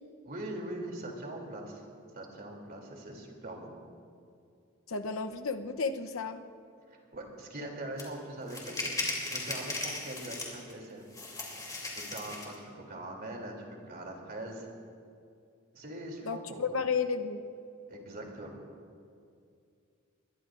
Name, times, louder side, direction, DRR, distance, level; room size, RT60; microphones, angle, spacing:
voice 1, 0.2-1.8 2.1-3.7 6.9-8.9 9.3-11.0 11.9-14.7 15.7-16.8 17.9-18.7, right 1 dB, 45° right, 0 dB, 3.0 m, -42 dB
voice 2, 4.9-6.4 16.2-17.4, left 5 dB, 70° left, 7 dB, 0.8 m, -32 dB
sound 1, 8.0-8.1 8.5-10.7 11.1-12.5, left 2 dB, 15° left, 3.0 m, -37 dB
22.0 x 21.5 x 2.5 m, 2.4 s
head